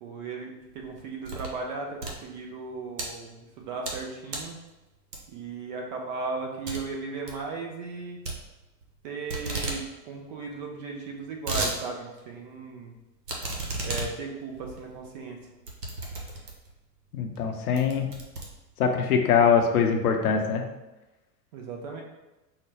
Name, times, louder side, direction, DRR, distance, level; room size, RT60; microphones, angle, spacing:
voice 1, 0.0-4.6 5.3-8.2 9.0-12.9 13.8-15.4 21.5-22.0, right 4 dB, 30° right, 1 dB, 0.5 m, -36 dB
sound 1, 0.7-1.6 1.9-3.1 3.6-4.0 4.3-4.6 5.1-5.5 5.9-6.0 6.3-6.4 6.7-6.8 7.1-7.4 8.2-9.0 9.3-9.8 10.1-10.2 10.4-10.5 11.1-11.8 12.2-12.3 13.3-16.8 17.3-17.4 17.8-19.0, right 2 dB, 75° right, 1.1 m, -34 dB
voice 2, 17.1-18.1 18.8-20.6, left 6 dB, 65° left, 3 dB, 0.7 m, -23 dB
4.6 x 2.2 x 3.3 m, 1.0 s
figure-of-eight pair, 100°, 48 cm